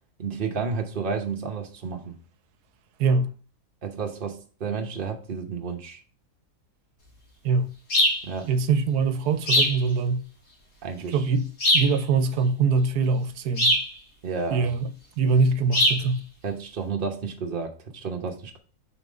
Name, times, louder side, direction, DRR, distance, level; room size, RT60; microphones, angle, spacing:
voice 1, 0.2-2.1 3.8-6.0 8.2-8.5 10.8-11.2 14.2-14.7 16.4-18.6, right 5 dB, 40° right, 1.0 m, -31 dB
voice 2, 3.0-3.3 7.4-7.7 8.5-10.2 11.1-13.8 14.5-14.9 15.2-16.2, right 4 dB, 80° right, 1.2 m, -23 dB
sound 1, 7.9-8.2 9.5-9.8 11.6-12.0 13.6-13.9 15.7-16.0, left 1 dB, 70° left, 2.2 m, -21 dB
5.8 x 4.1 x 5.0 m
omnidirectional pair, 1.7 m